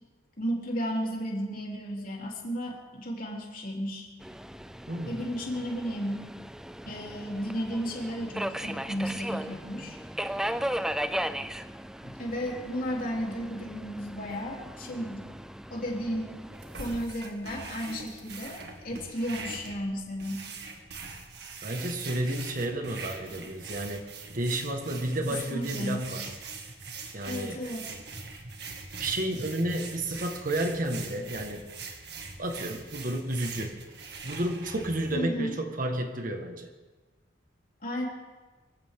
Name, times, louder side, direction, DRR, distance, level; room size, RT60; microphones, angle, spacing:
voice 1, 0.4-4.1 5.1-6.3 6.8-10.0 12.0-15.3 15.7-16.4 16.8-20.5 25.2-26.0 27.3-27.9 35.1-35.6 37.8-38.1, equal, 50° left, -2 dB, 3.5 m, -33 dB
Subway metro underground, 4.2-17.0, right 1 dB, 5° right, 0.4 m, -37 dB
voice 2, 4.9-5.2 21.6-24.0 24.3-26.3 27.1-27.6 29.0-31.6 32.4-33.7 34.2-36.7, right 1 dB, 50° right, 4 dB, 1.7 m, -31 dB
sound 1, 16.5-35.2, right 4 dB, 65° right, 2.1 m, -42 dB
24.5 x 15.5 x 3.8 m, 1.3 s
head